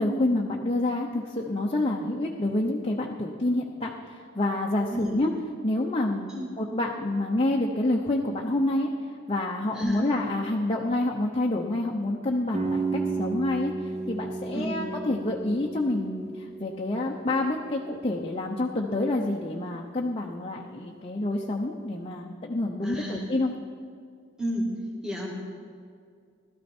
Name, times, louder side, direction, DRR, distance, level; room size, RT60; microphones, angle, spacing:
voice 1, 0.0-5.3 5.6-6.3 6.6-8.9 9.3-13.7 14.1-23.5, left 2 dB, 30° left, 0 dB, 0.8 m, -28 dB
voice 2, 4.9-5.2 6.3-6.5 9.7-10.1 14.5-14.8 22.8-23.3 24.4-24.7 25.0-25.3, equal, 5° right, -4 dB, 1.9 m, -31 dB
sound 1, 12.5-18.3, right 3 dB, 35° right, 0.8 m, -33 dB
16.5 x 12.5 x 4.4 m, 2.2 s
head